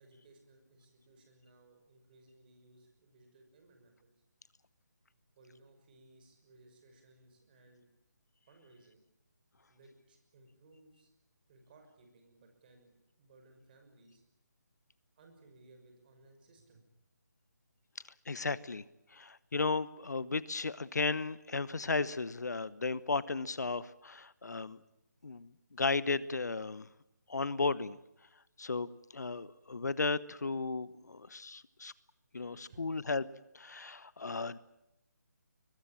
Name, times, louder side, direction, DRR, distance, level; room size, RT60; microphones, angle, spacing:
voice 1, 0.0-4.1 5.4-7.9 8.5-9.0 9.7-11.1 11.5-14.2 15.2-16.8 32.3-32.9, right 2 dB, 30° right, 4 dB, 6.0 m, -62 dB
voice 2, 18.3-18.8 19.1-24.8 25.2-26.9 27.3-28.0 28.6-31.9 32.3-33.3 33.5-34.6, left 3 dB, 70° left, 18 dB, 1.0 m, -35 dB
22.0 x 20.5 x 8.9 m, 0.85 s
figure-of-eight pair, 150°, 10 cm